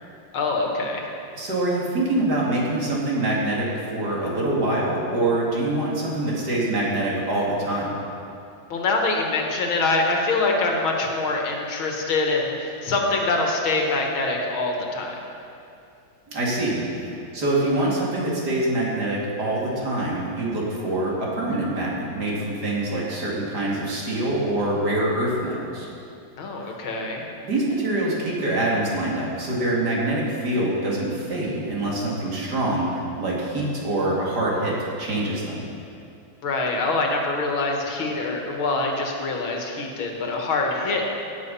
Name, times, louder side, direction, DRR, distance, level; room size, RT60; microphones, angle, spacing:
voice 1, 0.3-1.0 8.7-15.2 26.4-27.2 36.4-41.0, left 3 dB, 85° left, 1 dB, 2.3 m, -24 dB
voice 2, 1.3-8.0 16.3-25.9 26.6-26.7 27.4-35.6, right 1 dB, 55° right, -5 dB, 2.9 m, -25 dB
17.0 x 7.8 x 5.6 m, 2.6 s
omnidirectional pair, 2.2 m